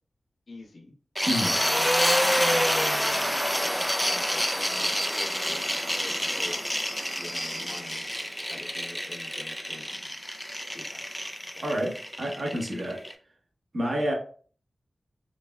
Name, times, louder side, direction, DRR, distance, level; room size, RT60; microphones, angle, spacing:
voice 1, 0.5-0.9 1.4-1.8 2.5-2.7 3.5-5.6 6.0-6.6 7.2-8.0 8.5-10.0 10.7-11.1, left 2 dB, 80° left, -4 dB, 1.0 m, -45 dB
sound 1, 1.2-13.1, equal, 5° left, 0.4 m, -27 dB
voice 2, 1.3-1.6 11.6-13.0 13.7-14.1, equal, 55° right, -1 dB, 1.1 m, -29 dB
5.0 x 2.2 x 2.2 m, 0.43 s
wide cardioid pair, 105°, 0 cm